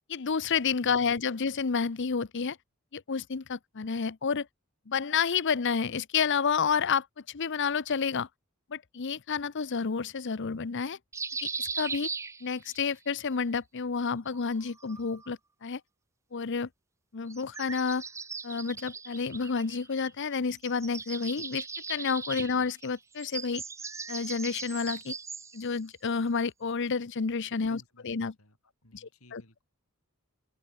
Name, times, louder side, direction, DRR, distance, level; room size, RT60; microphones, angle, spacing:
voice 1, 0.1-2.6 2.9-4.5 4.9-8.3 8.7-11.0 11.4-12.1 12.4-15.8 16.3-16.7 17.1-18.0 18.4-23.6 24.1-25.1 25.5-28.3 28.9-29.4, left 5 dB, 55° left, 0.7 m, -30 dB
sound 1, 11.1-12.9 14.3-15.3 17.3-20.2 20.5-25.7, right 5 dB, 15° right, 0.4 m, -39 dB
voice 2, 27.6-29.6, left 1 dB, 75° left, 7.3 m, -58 dB
open air
head